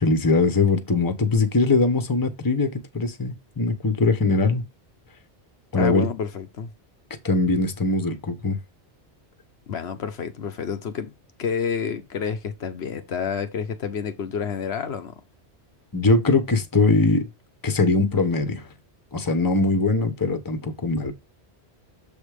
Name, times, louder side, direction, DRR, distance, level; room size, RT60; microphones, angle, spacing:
voice 1, 0.0-4.6 5.7-6.0 7.2-8.6 15.9-17.3 17.6-18.7 19.1-21.1, left 3 dB, 20° left, 0.9 m, -21 dB
voice 2, 5.7-6.7 9.7-11.1 11.4-15.1, left 6 dB, 70° left, 1.1 m, -29 dB
7.2 x 3.5 x 4.9 m
omnidirectional pair, 1.1 m